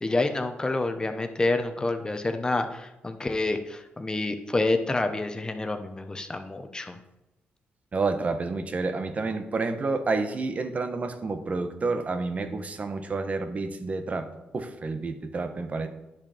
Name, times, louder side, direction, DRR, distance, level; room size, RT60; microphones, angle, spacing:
voice 1, 0.0-7.0, left 2 dB, 20° left, 7 dB, 1.1 m, -28 dB
voice 2, 7.9-15.9, right 3 dB, 40° right, 8 dB, 1.1 m, -29 dB
10.5 x 6.2 x 4.3 m, 0.94 s
cardioid pair, 85°, 4 cm